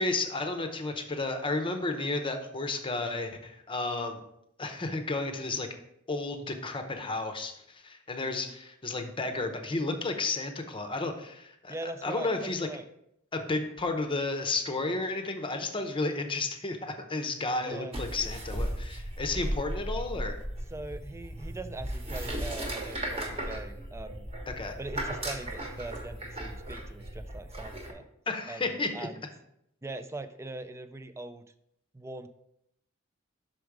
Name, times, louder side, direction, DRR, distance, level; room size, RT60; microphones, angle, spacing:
voice 1, 0.0-4.2 4.6-5.7 6.1-12.7 13.3-20.4 24.6-24.7 28.3-29.1, left 3 dB, 25° left, 6 dB, 0.7 m, -32 dB
voice 2, 11.7-12.9 17.6-18.0 20.7-24.3 24.8-28.0 28.5-29.3 29.8-31.4 31.9-32.3, right 2 dB, 15° right, 11 dB, 0.3 m, -41 dB
sound 1, 17.9-27.9, right 1 dB, 30° right, 1.1 m, -36 dB
6.1 x 5.0 x 4.7 m, 0.78 s
head